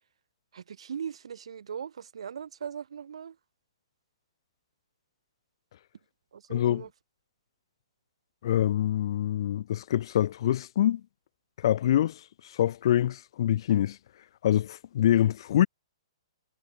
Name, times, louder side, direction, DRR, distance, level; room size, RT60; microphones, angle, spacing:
voice 1, 0.5-3.4 6.3-6.9, right 7 dB, 80° right, 6.9 m, -39 dB
voice 2, 6.5-6.8 8.4-11.0 11.6-12.2 12.5-14.0 14.4-15.7, left 11 dB, 55° left, 0.5 m, -25 dB
hypercardioid pair, 155°, 3 cm